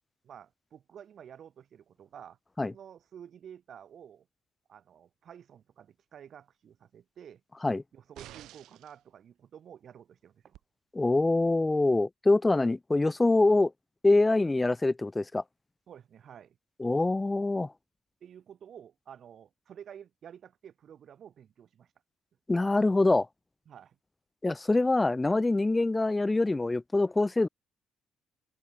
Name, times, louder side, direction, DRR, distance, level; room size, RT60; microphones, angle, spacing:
voice 1, 0.2-4.3 4.7-7.4 7.9-10.6 15.9-16.6 18.2-21.9 23.7-24.0, right 9 dB, 60° right, 3.9 m, -51 dB
sound 1, 8.1-9.0 10.5-10.6, right 14 dB, 85° right, 3.3 m, -49 dB
voice 2, 11.0-13.7 14.0-15.4 16.8-17.7 22.5-23.3 24.4-27.5, left 2 dB, 15° left, 0.4 m, -25 dB
cardioid pair, 90°, 0 cm